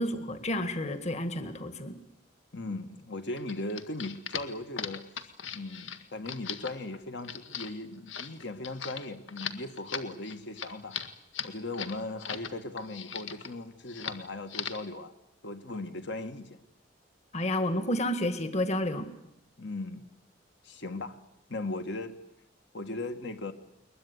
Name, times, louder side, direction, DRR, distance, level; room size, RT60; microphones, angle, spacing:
voice 1, 0.0-2.0 17.3-19.1, left 1 dB, 35° left, 9 dB, 1.9 m, -30 dB
voice 2, 2.5-11.0 11.4-15.1 15.4-16.6 19.6-20.1 20.6-21.2 21.5-22.2 22.7-23.5, left 2 dB, 65° left, 8 dB, 1.9 m, -38 dB
sound 1, 3.4-12.5 12.8-13.5 13.9-14.2 14.5-14.9, left 8 dB, 85° left, 1.8 m, -39 dB
21.5 x 21.5 x 9.6 m, 0.81 s
head